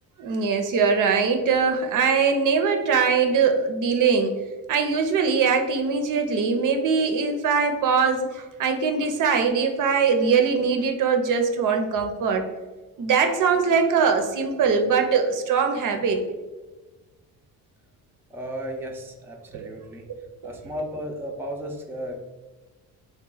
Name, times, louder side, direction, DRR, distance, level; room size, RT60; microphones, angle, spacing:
voice 1, 0.2-4.4 4.7-12.5 13.0-16.2 19.5-19.7, right 5 dB, 55° right, 5 dB, 0.6 m, -22 dB
voice 2, 18.3-20.0 20.4-22.2, equal, 5° right, 1 dB, 0.4 m, -34 dB
2.9 x 2.2 x 3.9 m, 1.2 s
supercardioid pair, 75°, 38 cm